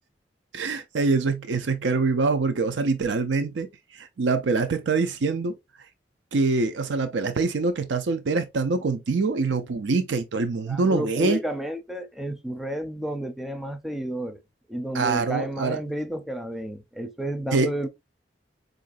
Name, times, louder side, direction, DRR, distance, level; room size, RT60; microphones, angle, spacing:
voice 1, 0.5-3.7 3.9-5.5 6.3-11.4 14.9-15.8 17.5-17.7, right 3 dB, 85° right, 0.5 m, -24 dB
voice 2, 10.7-14.4 14.7-17.9, right 1 dB, ahead, 0.4 m, -31 dB
4.7 x 2.5 x 2.4 m
head